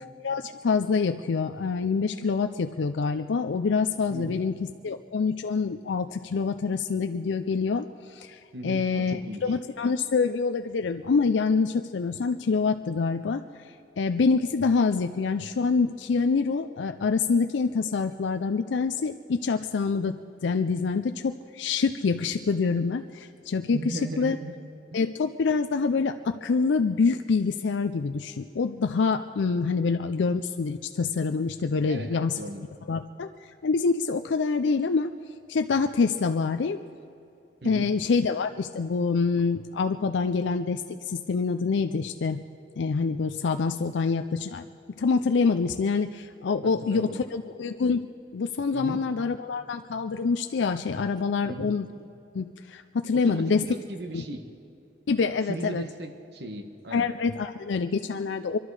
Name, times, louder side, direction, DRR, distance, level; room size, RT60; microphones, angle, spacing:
voice 1, 0.2-4.5 4.8-13.4 14.0-24.4 24.9-32.4 32.9-33.3 33.6-35.1 35.5-36.8 37.6-42.4 42.8-44.6 45.0-48.0 48.3-51.9 52.3-53.6 54.1-54.2 55.1-55.8 56.9-58.6, left 4 dB, 85° left, 7 dB, 0.4 m, -26 dB
voice 2, 8.5-9.6 23.7-24.6 31.9-32.7 37.6-37.9 46.6-47.2 48.7-49.0 51.4-51.7 53.1-54.4 55.5-57.1, right 1 dB, 65° right, 6 dB, 1.2 m, -37 dB
24.5 x 12.0 x 4.8 m, 2.8 s
head